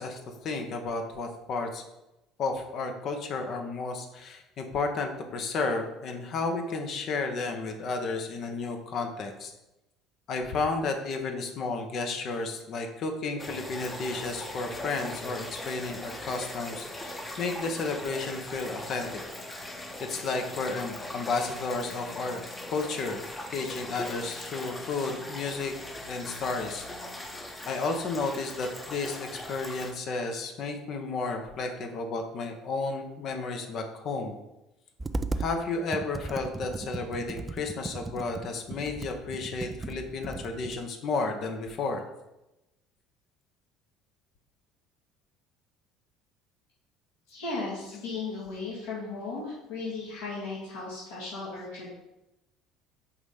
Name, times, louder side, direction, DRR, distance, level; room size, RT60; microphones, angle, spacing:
voice 1, 0.0-1.8 2.4-9.5 10.3-19.2 20.0-22.4 22.7-25.7 26.1-26.9 27.7-34.4 35.4-42.0, left 3 dB, 45° left, 4 dB, 0.8 m, -32 dB
sound 1, 13.4-29.9, left 1 dB, 15° left, 0.9 m, -40 dB
Computer keyboard, 35.0-35.5 35.9-40.8, right 3 dB, 20° right, 0.3 m, -36 dB
voice 2, 47.3-51.9, left 3 dB, 65° left, -7 dB, 1.6 m, -36 dB
5.0 x 4.1 x 4.9 m, 0.94 s
figure-of-eight pair, 60°, 0 cm